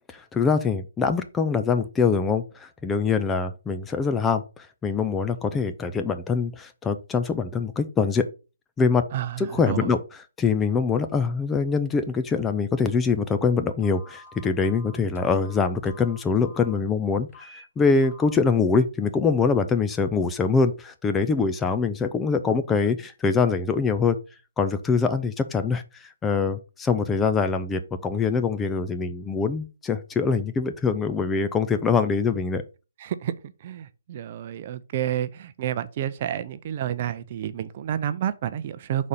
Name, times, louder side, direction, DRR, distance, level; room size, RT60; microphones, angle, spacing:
voice 1, 0.1-8.3 8.8-9.0 9.4-10.0 10.4-24.2 24.6-32.6, left 5 dB, 10° left, 0.5 m, -24 dB
voice 2, 9.1-9.9 33.0-33.3 33.6-39.1, right 10 dB, 40° right, 0.6 m, -29 dB
Telephone, 13.8-16.7 17.3-17.6 18.0-18.3, left 2 dB, 40° left, 3.3 m, -48 dB
6.4 x 4.2 x 5.5 m
hypercardioid pair, 155°, 0 cm